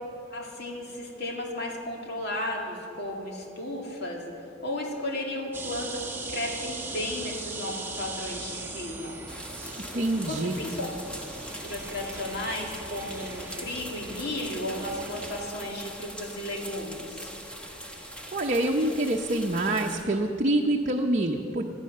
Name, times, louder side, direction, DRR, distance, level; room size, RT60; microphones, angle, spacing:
voice 1, 0.3-4.3 4.6-9.2 10.3-10.9 11.6-17.3, left 1 dB, 60° left, 0 dB, 2.4 m, -34 dB
sound 1, 5.5-15.5, right 3 dB, 10° right, 1.3 m, -39 dB
sound 2, 9.3-20.0, equal, 5° left, 1.5 m, -42 dB
voice 2, 9.9-10.6 18.3-21.6, right 1 dB, 40° right, 1 dB, 0.8 m, -26 dB
18.0 x 12.0 x 6.6 m, 2.7 s
head